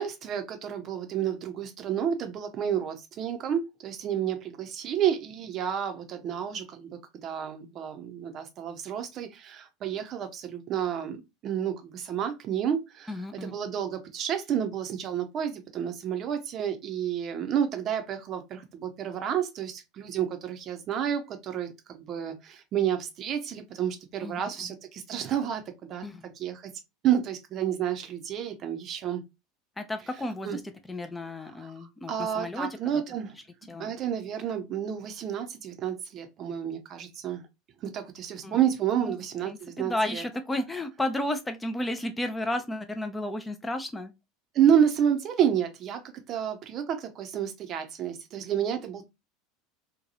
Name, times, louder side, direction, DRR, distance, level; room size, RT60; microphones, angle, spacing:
voice 1, 0.0-26.0 26.4-26.7 27.0-29.2 30.4-30.6 31.4-31.7 32.1-33.3 33.8-37.4 37.8-40.2 44.5-46.0 46.3-49.1, right 9 dB, 40° right, 0.6 m, -30 dB
voice 2, 13.1-13.6 24.2-24.7 26.0-26.3 29.8-30.6 30.9-33.0 33.7-33.9 38.4-38.6 39.1-39.2 39.5-44.1, left 1 dB, 10° left, 0.4 m, -33 dB
2.8 x 2.2 x 2.6 m
figure-of-eight pair, 75°, 0 cm